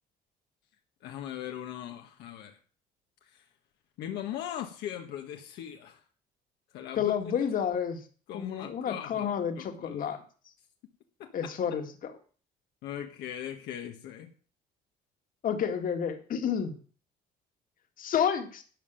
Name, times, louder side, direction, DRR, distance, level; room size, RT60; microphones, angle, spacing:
voice 1, 1.0-2.6 4.0-6.0 6.7-7.1 8.3-10.2 11.2-11.3 12.8-14.3, left 10 dB, 80° left, 4 dB, 1.6 m, -39 dB
voice 2, 7.0-8.0 8.3-10.2 11.3-12.2 15.4-16.7 18.0-18.6, left 8 dB, 55° left, 6 dB, 2.2 m, -30 dB
12.5 x 5.6 x 9.1 m, 0.41 s
cardioid pair, 110°, 17 cm